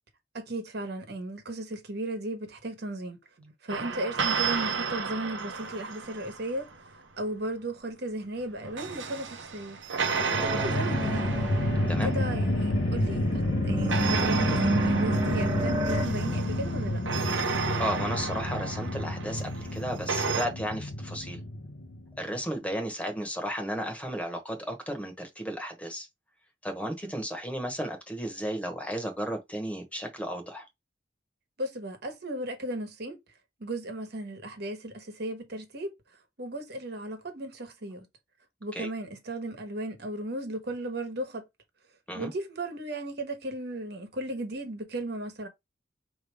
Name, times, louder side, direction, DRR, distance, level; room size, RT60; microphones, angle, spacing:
voice 1, 0.3-9.8 10.2-11.5 12.0-17.0 27.0-27.1 31.6-33.2 33.6-35.9 36.4-38.1 38.6-41.4 42.1-45.5, right 1 dB, 60° right, 1.3 m, -36 dB
sound 1, 3.7-6.9 8.4-13.3 13.9-20.5, right 5 dB, 90° right, 0.9 m, -33 dB
sound 2, 10.0-22.3, left 1 dB, 75° left, 0.8 m, -30 dB
sound 3, 10.4-16.1, right 2 dB, 25° right, 0.9 m, -32 dB
voice 2, 17.8-21.4 22.2-26.1 26.6-30.7 38.7-38.9 42.1-42.3, equal, 10° left, 1.1 m, -34 dB
5.0 x 3.0 x 3.5 m
head